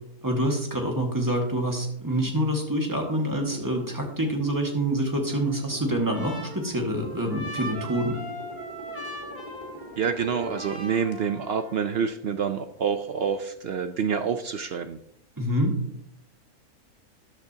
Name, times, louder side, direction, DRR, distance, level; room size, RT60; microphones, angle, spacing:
voice 1, 0.2-8.2 15.4-15.7, right 1 dB, 15° right, 1 dB, 1.7 m, -26 dB
sound 1, 3.4-11.1, left 1 dB, 30° left, 1.7 m, -44 dB
Trumpet, 5.3-12.0, right 1 dB, 10° left, 2.8 m, -40 dB
voice 2, 10.0-15.0, right 6 dB, 65° right, 9 dB, 0.6 m, -27 dB
13.5 x 10.5 x 2.8 m, 0.77 s
omnidirectional pair, 1.6 m